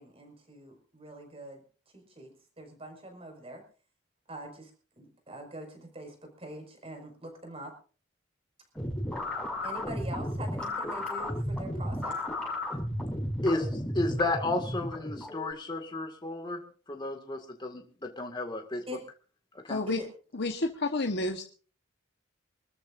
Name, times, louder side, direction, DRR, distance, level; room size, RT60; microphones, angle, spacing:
voice 1, 0.0-1.6 1.9-2.3 2.6-3.6 4.3-4.7 5.0-7.7 9.6-12.2 18.9-19.0 19.9-20.1, right 1 dB, 30° right, 3 dB, 5.7 m, -43 dB
sound 1, 8.7-15.5, left 1 dB, 5° left, 6.0 m, -34 dB
voice 2, 13.4-16.6 16.9-18.8 19.5-19.8, left 2 dB, 25° left, 3 dB, 2.1 m, -32 dB
voice 3, 19.7-20.0 20.3-21.4, left 2 dB, 60° left, 3 dB, 1.3 m, -30 dB
26.5 x 13.5 x 2.6 m, 0.40 s
head